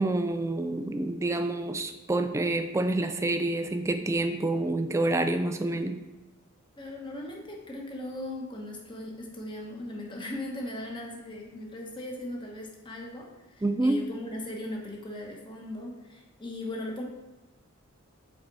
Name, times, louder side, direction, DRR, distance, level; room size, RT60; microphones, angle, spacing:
voice 1, 0.0-6.0 13.6-14.0, right 2 dB, 15° right, 7 dB, 0.3 m, -27 dB
voice 2, 6.8-17.0, left 1 dB, 20° left, 0 dB, 1.1 m, -38 dB
6.4 x 4.3 x 4.7 m, 1.1 s
head